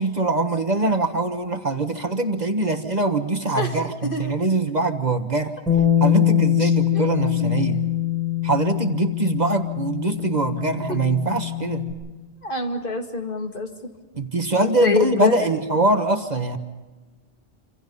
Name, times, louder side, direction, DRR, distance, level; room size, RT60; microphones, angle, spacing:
voice 1, 0.0-5.6 6.0-7.9 8.4-11.9 14.1-16.6, right 2 dB, 40° right, 7 dB, 1.4 m, -23 dB
voice 2, 4.0-4.3 6.6-7.5 10.9-11.0 12.4-13.7 14.8-15.5, left 3 dB, 50° left, 3 dB, 2.4 m, -26 dB
Bass guitar, 5.7-11.9, left 11 dB, ahead, 7.0 m, -23 dB
27.0 x 27.0 x 5.5 m, 1.2 s
omnidirectional pair, 1.2 m